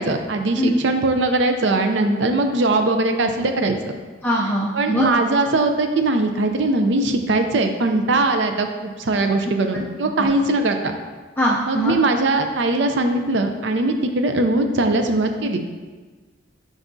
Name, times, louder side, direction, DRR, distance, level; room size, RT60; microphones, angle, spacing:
voice 1, 0.0-3.8 4.7-11.0 11.7-15.6, right 2 dB, 65° right, 6 dB, 0.5 m, -20 dB
voice 2, 4.2-5.1 9.7-9.8 10.2-10.3 11.4-12.0, equal, 10° left, -3 dB, 0.4 m, -22 dB
7.9 x 6.0 x 2.7 m, 1.3 s
head